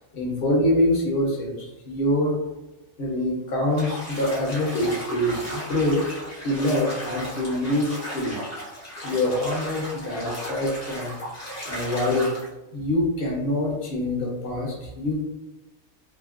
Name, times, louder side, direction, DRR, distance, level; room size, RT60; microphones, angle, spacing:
voice 1, 0.1-2.4 3.0-6.0 6.4-8.4 9.0-11.1 11.7-12.3 12.7-15.3, left 1 dB, 50° left, -2 dB, 0.7 m, -25 dB
Bathtub (filling or washing), 3.7-12.5, equal, 25° left, 0.3 m, -36 dB
3.0 x 2.4 x 2.4 m, 1.0 s
omnidirectional pair, 1.6 m